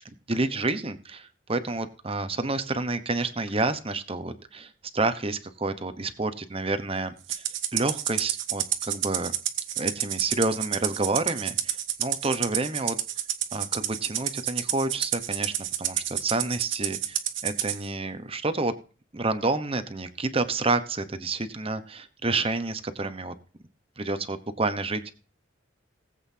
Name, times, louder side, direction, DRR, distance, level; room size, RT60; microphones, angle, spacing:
voice 1, 0.3-7.4 7.7-9.3 9.8-13.0 13.5-18.7 19.1-23.3 24.0-25.1, right 3 dB, 30° right, 10 dB, 1.0 m, -29 dB
Rattle (instrument), 7.3-17.8, right 11 dB, 70° right, 1.1 m, -29 dB
19.5 x 8.0 x 2.8 m, 0.37 s
head